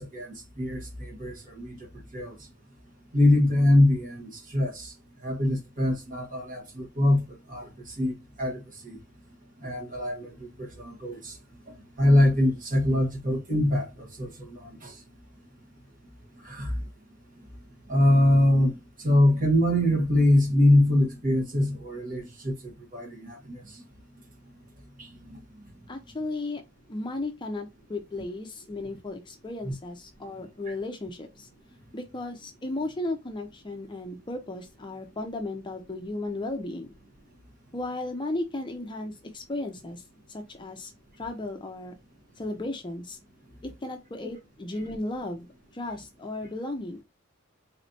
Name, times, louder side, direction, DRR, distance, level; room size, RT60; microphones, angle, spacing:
voice 1, 0.0-1.8 2.1-2.3 3.1-4.9 5.2-9.0 9.6-11.4 11.7-14.9 16.4-16.7 17.9-23.8 25.0-25.4 29.6-29.7, left 1 dB, 40° right, 1.3 m, -24 dB
voice 2, 25.9-26.6 26.9-31.5 31.9-36.9 37.7-40.0 40.3-40.9 41.2-41.9 42.4-43.2 43.6-45.5 45.7-47.0, left 2 dB, 20° left, 0.5 m, -35 dB
4.2 x 3.1 x 2.7 m
head